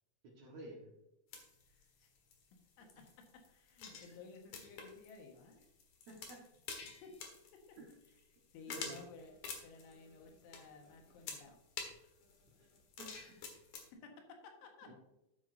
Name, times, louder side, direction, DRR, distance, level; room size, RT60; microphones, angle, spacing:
voice 1, 0.3-0.9 6.1-6.4 7.8-7.9 8.7-9.0 12.6-12.7 13.0-13.1 14.8-14.9, right 2 dB, 65° right, -1 dB, 1.7 m, -50 dB
sound 1, 1.3-13.9, left 5 dB, 60° left, 2.3 m, -50 dB
voice 2, 1.7-2.1 2.8-3.0 3.3-5.6 6.8-7.2 7.5-7.8 8.5-9.3 9.6-11.6 13.9-14.9, left 4 dB, 80° left, 3 dB, 3.9 m, -56 dB
11.5 x 8.3 x 2.7 m, 0.90 s
omnidirectional pair, 5.5 m